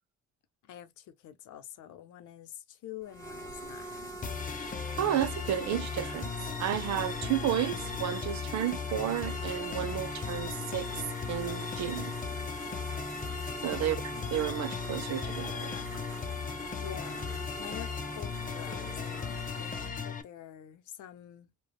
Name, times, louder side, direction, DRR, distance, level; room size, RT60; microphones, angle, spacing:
voice 1, 0.6-4.2 13.7-13.8 16.8-17.9 18.1-21.6, left 11 dB, 75° left, 0.7 m, -47 dB
sound 1, 3.0-19.9, right 1 dB, 10° left, 1.3 m, -43 dB
sound 2, 4.2-20.2, left 6 dB, 25° left, 0.6 m, -37 dB
voice 2, 5.0-6.3 6.6-12.1 13.6-15.8, right 11 dB, 65° right, 0.7 m, -32 dB
3.4 x 2.3 x 2.2 m
cardioid pair, 90°, 30 cm